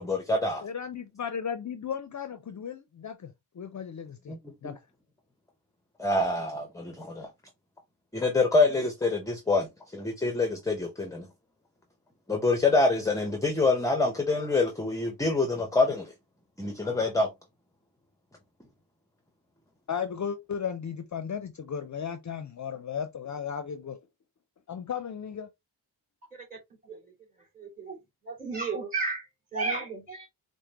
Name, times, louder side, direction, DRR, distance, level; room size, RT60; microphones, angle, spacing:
voice 1, 0.0-0.6 4.3-4.4 4.6-4.7 6.0-7.3 8.1-11.3 12.3-16.1 16.6-17.3, left 3 dB, 10° left, 0.7 m, -26 dB
voice 2, 0.6-4.4 4.6-4.8 19.9-24.0 24.7-25.5, left 7 dB, 45° left, 0.6 m, -35 dB
voice 3, 27.6-28.0 28.3-29.3 29.5-30.3, right 4 dB, 20° right, 2.5 m, -32 dB
4.9 x 2.2 x 2.9 m
cardioid pair, 90°, 41 cm